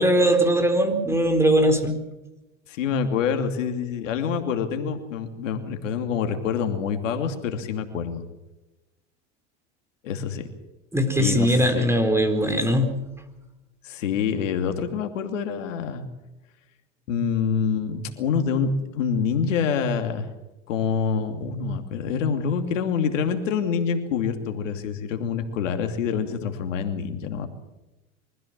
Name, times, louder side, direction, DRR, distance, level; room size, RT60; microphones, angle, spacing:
voice 1, 0.0-1.9 10.9-12.9, equal, 5° right, 6 dB, 4.2 m, -20 dB
voice 2, 2.7-8.2 10.0-10.5 11.2-11.8 13.8-16.1 17.1-20.3 20.7-27.5, left 6 dB, 85° left, 6 dB, 2.8 m, -26 dB
24.5 x 15.5 x 7.5 m, 1.0 s
hypercardioid pair, 95°, 37 cm